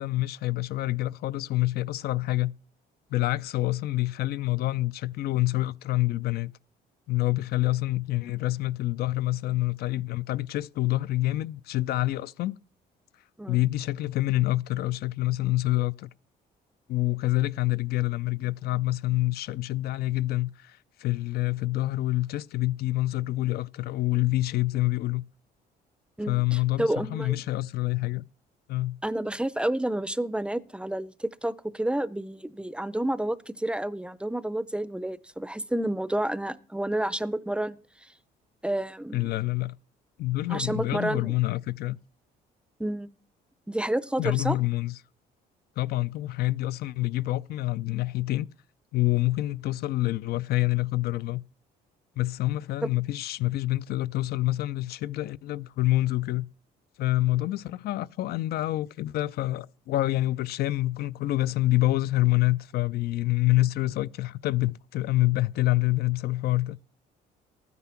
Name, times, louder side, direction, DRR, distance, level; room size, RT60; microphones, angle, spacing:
voice 1, 0.0-2.5 3.1-6.5 7.1-12.6 13.5-16.1 16.9-25.2 26.3-28.2 28.7-29.0 39.1-39.7 40.2-42.0 44.2-44.9 45.8-48.5 48.9-51.4 52.2-56.5 57.0-66.8, left 17 dB, 65° left, 0.5 m, -27 dB
voice 2, 26.2-27.4 29.0-37.8 38.6-39.3 40.5-41.3 42.8-43.1 43.7-44.6 52.8-52.9, right 1 dB, 5° right, 0.5 m, -30 dB
13.0 x 9.6 x 5.8 m
cardioid pair, 110°, 17 cm